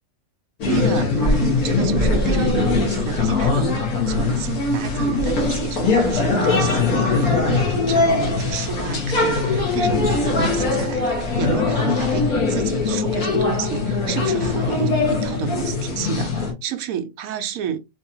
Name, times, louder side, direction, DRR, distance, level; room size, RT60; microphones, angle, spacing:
sound 1, 0.6-16.5, left 3 dB, 90° left, 1.7 m, -21 dB
voice 1, 0.7-3.8 4.1-17.8, right 8 dB, 75° right, 1.0 m, -30 dB
4.0 x 2.7 x 2.7 m
omnidirectional pair, 1.5 m